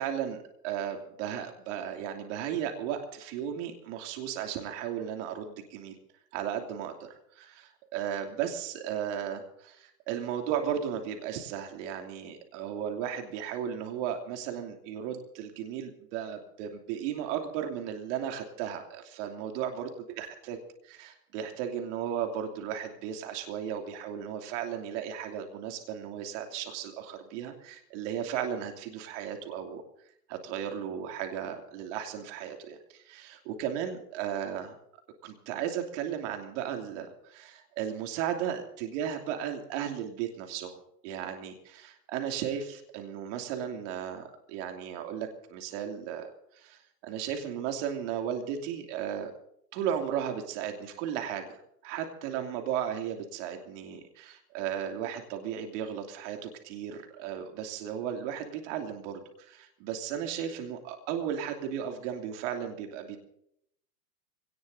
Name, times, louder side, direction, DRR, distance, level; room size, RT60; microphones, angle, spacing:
voice 1, 0.0-0.4 0.6-6.0 6.3-29.8 30.3-34.8 35.2-40.8 41.0-46.3 46.5-49.3 49.7-63.2, right 9 dB, 45° right, 5 dB, 2.8 m, -35 dB
25.5 x 18.5 x 2.7 m, 0.72 s
hypercardioid pair, 130°, 48 cm